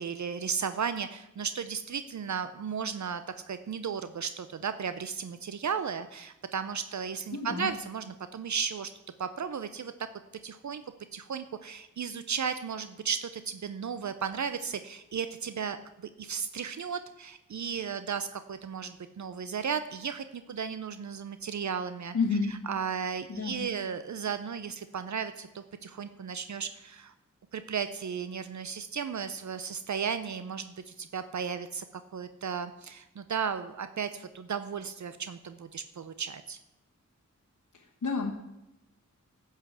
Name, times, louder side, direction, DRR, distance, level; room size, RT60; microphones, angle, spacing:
voice 1, 0.0-3.2 3.5-8.9 9.2-9.9 10.4-10.8 11.1-15.8 16.2-22.1 22.7-27.1 27.5-31.8 32.1-36.6, right 6 dB, 65° right, 11 dB, 0.6 m, -35 dB
voice 2, 7.3-7.7 22.1-22.5 23.3-23.7 37.7-38.3, left 4 dB, 65° left, -2 dB, 1.2 m, -30 dB
10.5 x 5.7 x 7.9 m, 0.93 s
wide cardioid pair, 60°, 31 cm